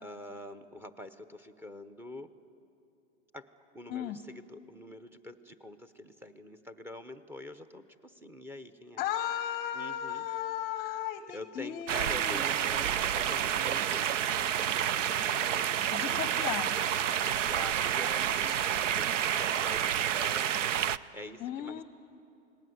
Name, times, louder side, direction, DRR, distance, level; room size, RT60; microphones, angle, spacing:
voice 1, 0.0-2.3 3.3-9.0 9.7-10.3 11.3-16.3 16.9-21.8, left 1 dB, 5° right, 10 dB, 0.8 m, -46 dB
voice 2, 3.9-4.2 9.0-12.4 15.9-16.7 21.4-21.8, left 11 dB, 25° left, 12 dB, 0.8 m, -35 dB
sound 1, 11.9-21.0, right 9 dB, 80° right, 0.7 m, -29 dB
28.5 x 19.5 x 7.9 m, 2.7 s
hypercardioid pair, 130°, 37 cm